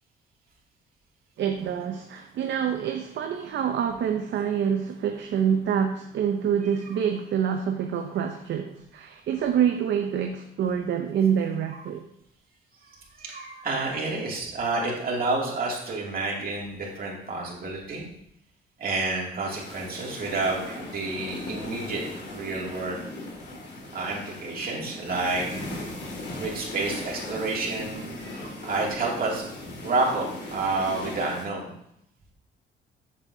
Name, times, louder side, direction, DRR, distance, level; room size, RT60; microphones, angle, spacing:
voice 1, 1.4-12.0, right 8 dB, 65° right, 4 dB, 0.6 m, -26 dB
voice 2, 12.8-18.1 18.8-22.0 22.3-23.0 23.9-25.7 26.4-29.5 29.8-31.7, right 3 dB, 45° right, -3 dB, 2.4 m, -29 dB
sound 1, 19.5-31.4, left 2 dB, 60° left, 2.2 m, -38 dB
7.7 x 7.3 x 2.7 m, 0.75 s
cardioid pair, 90°, 20 cm